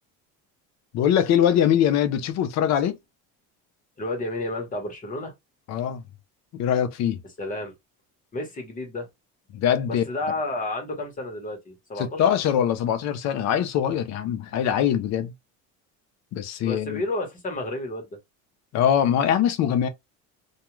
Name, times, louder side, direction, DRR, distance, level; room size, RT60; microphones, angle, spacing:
voice 1, 0.9-3.0 5.7-6.0 6.5-7.2 9.5-10.0 12.0-15.3 16.3-17.0 18.7-19.9, left 9 dB, 50° left, 0.6 m, -22 dB
voice 2, 4.0-5.3 7.4-7.7 8.3-9.1 9.9-12.2 16.6-18.1, left 2 dB, 25° left, 1.0 m, -31 dB
2.3 x 2.3 x 3.0 m
cardioid pair, 150°, 34 cm